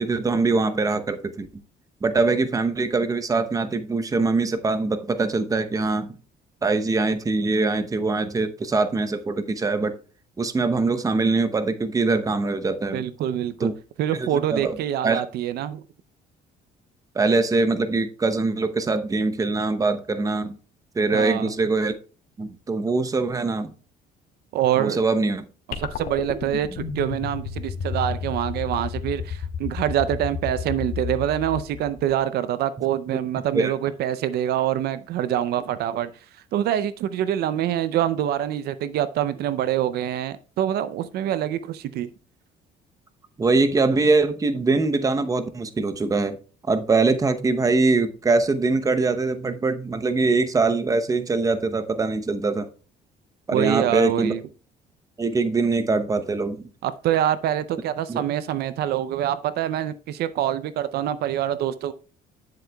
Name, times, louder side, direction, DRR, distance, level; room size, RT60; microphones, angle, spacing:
voice 1, 0.0-1.5 2.0-6.1 6.6-10.0 10.4-13.0 13.6-13.7 14.1-14.8 15.0-15.2 17.1-20.5 21.0-21.9 22.4-23.7 24.8-25.5 32.8-33.2 33.5-33.7 43.4-46.4 46.7-52.7 53.5-54.3 55.2-56.7 58.1-58.2, right 3 dB, 20° right, 0.8 m, -23 dB
voice 2, 12.9-13.7 14.0-15.8 21.1-21.5 24.5-25.0 25.8-36.1 36.5-42.1 53.5-54.4 56.8-61.9, right 11 dB, 70° right, 0.5 m, -25 dB
sound 1, 25.7-32.2, left 7 dB, 65° left, 1.7 m, -32 dB
9.8 x 7.6 x 2.3 m
cardioid pair, 110°, 17 cm